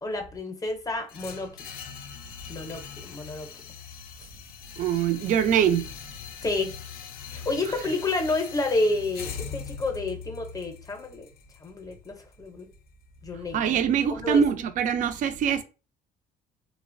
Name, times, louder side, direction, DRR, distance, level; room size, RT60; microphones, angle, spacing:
voice 1, 0.0-1.5 2.5-3.5 6.4-6.8 7.3-11.2 11.6-12.7 13.2-13.6 14.1-14.4, left 2 dB, 20° left, 0.6 m, -30 dB
sound 1, 1.1-13.1, left 7 dB, 65° left, 0.4 m, -41 dB
voice 2, 4.8-5.9 13.5-15.6, right 8 dB, 50° right, 0.4 m, -23 dB
2.9 x 2.0 x 2.5 m
cardioid pair, 110°, 17 cm